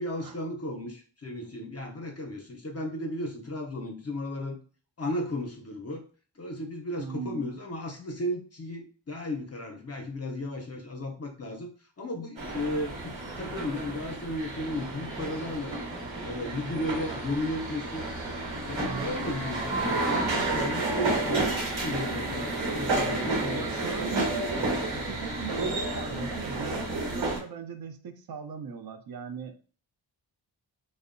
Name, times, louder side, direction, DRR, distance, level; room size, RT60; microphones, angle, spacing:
voice 1, 0.0-4.6 5.0-6.0 6.4-11.7 12.0-15.8 16.2-18.1 18.7-24.6, left 1 dB, 35° left, 2 dB, 0.5 m, -35 dB
voice 2, 7.0-7.5 18.8-19.2 23.5-24.5 24.9-29.7, right 6 dB, 55° right, 7 dB, 0.5 m, -39 dB
sound 1, 12.4-27.4, right 2 dB, 75° right, 1.0 m, -31 dB
2.6 x 2.1 x 2.5 m, 0.39 s
wide cardioid pair, 75°, 46 cm